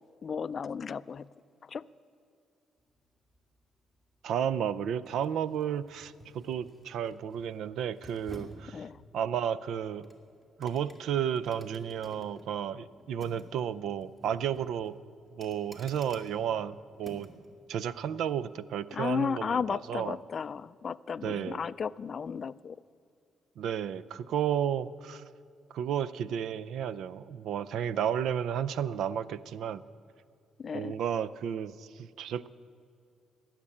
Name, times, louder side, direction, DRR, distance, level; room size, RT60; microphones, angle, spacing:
voice 1, 0.2-1.3 1.7-1.9 8.7-9.0 18.9-22.8 30.6-31.0, left 6 dB, 45° left, 17 dB, 0.3 m, -34 dB
sound 1, 2.8-17.5 17.9-18.1, right 1 dB, 25° right, 2.3 m, -53 dB
voice 2, 4.2-8.8 9.1-10.1 10.6-15.0 15.3-17.3 17.7-20.2 21.2-21.6 23.6-25.2 25.7-29.8 30.7-32.5, right 9 dB, 75° right, 17 dB, 0.4 m, -32 dB
17.5 x 7.4 x 9.8 m, 2.3 s
cardioid pair, 90°, 0 cm